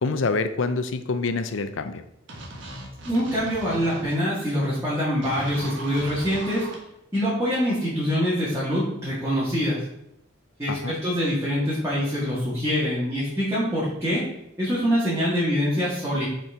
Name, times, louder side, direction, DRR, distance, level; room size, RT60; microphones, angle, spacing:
voice 1, 0.0-2.0 10.7-11.0, left 3 dB, 80° left, 10 dB, 0.6 m, -26 dB
sound 1, 2.3-4.0 5.2-6.8, right 1 dB, 70° right, 1.5 m, -38 dB
voice 2, 3.1-6.7 7.1-9.8 10.6-14.2 14.6-16.3, equal, 15° right, -9 dB, 1.9 m, -24 dB
6.0 x 4.5 x 4.8 m, 0.83 s
head